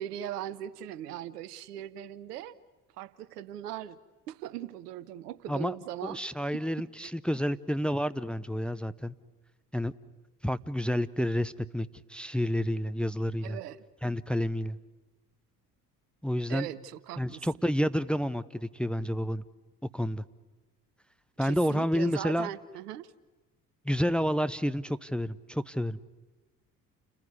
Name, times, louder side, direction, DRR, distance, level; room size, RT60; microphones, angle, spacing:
voice 1, 0.0-2.5 3.0-4.0 4.3-6.2 6.5-6.6 7.0-7.1 13.4-13.8 16.5-17.5 21.4-23.1, right 11 dB, 80° right, 18 dB, 0.9 m, -39 dB
voice 2, 6.0-9.1 9.7-9.9 10.4-13.6 14.0-14.8 16.2-16.7 17.2-19.4 19.9-20.2 21.4-22.5 23.8-26.0, equal, ahead, 15 dB, 0.7 m, -29 dB
29.5 x 15.5 x 9.7 m, 1.2 s
hypercardioid pair, 55°, 47 cm